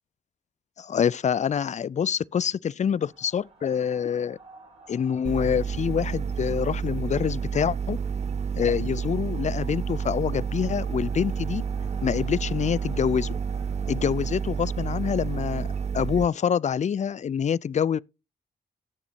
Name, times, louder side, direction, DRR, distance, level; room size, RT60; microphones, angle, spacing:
voice 1, 0.8-4.4 4.9-8.0 8.5-11.6 12.0-13.3 13.9-15.7 15.9-18.0, left 8 dB, 40° left, 0.4 m, -26 dB
sound 1, 2.9-15.9, right 2 dB, 85° right, 5.8 m, -49 dB
sound 2, 5.2-16.3, right 6 dB, 35° right, 0.4 m, -30 dB
17.5 x 7.0 x 2.7 m
supercardioid pair, 40°, 19 cm